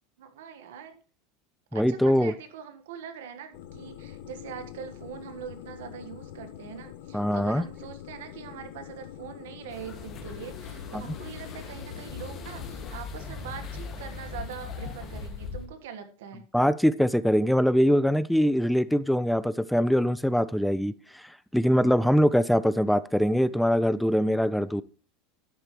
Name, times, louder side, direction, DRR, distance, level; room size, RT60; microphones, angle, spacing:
voice 1, 0.2-1.0 1.7-16.5, right 7 dB, 90° right, 9 dB, 1.4 m, -42 dB
voice 2, 1.7-2.3 7.1-7.6 10.9-11.0 16.5-24.8, equal, ahead, 17 dB, 0.3 m, -23 dB
sound 1, 3.5-12.9, left 10 dB, 75° left, 0.9 m, -45 dB
sound 2, 9.7-15.7, left 5 dB, 35° left, 1.9 m, -39 dB
11.0 x 8.0 x 3.1 m, 0.37 s
supercardioid pair, 140°, 0 cm